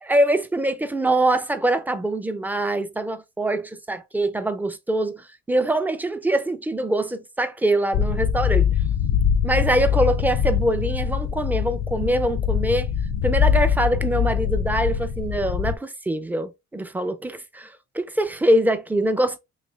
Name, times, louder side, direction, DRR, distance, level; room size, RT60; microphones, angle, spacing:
voice 1, 0.0-8.7 9.4-12.9 13.2-19.4, right 1 dB, 5° right, 0.5 m, -23 dB
sound 1, 7.9-15.8, left 8 dB, 65° left, 0.6 m, -23 dB
3.2 x 2.7 x 3.3 m
cardioid pair, 90°, 30 cm